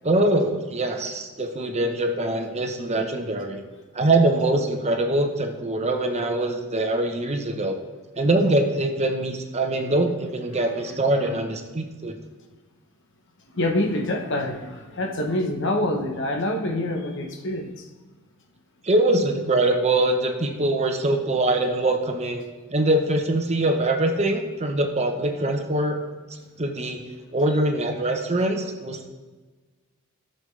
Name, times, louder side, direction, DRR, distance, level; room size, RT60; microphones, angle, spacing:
voice 1, 0.0-3.6 3.9-7.8 8.2-12.2 18.8-22.4 22.7-26.0 26.6-27.0 27.3-29.1, right 2 dB, 30° right, 4 dB, 0.9 m, -23 dB
voice 2, 10.9-11.3 13.5-17.9, left 1 dB, 60° left, 3 dB, 1.1 m, -26 dB
13.0 x 6.8 x 3.3 m, 1.3 s
head